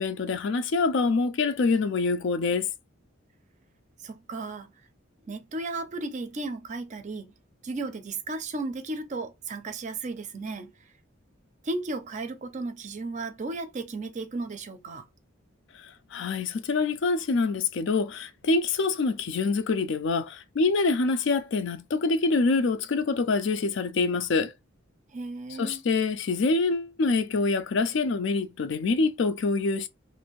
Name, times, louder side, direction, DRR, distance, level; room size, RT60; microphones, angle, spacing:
voice 1, 0.0-2.7 15.7-24.5 25.6-29.9, left 3 dB, 65° left, 0.4 m, -25 dB
voice 2, 4.0-4.7 5.2-7.3 7.6-10.7 11.6-15.0 20.9-21.0 25.1-25.8, right 3 dB, 35° right, 0.5 m, -34 dB
2.6 x 2.5 x 3.0 m
head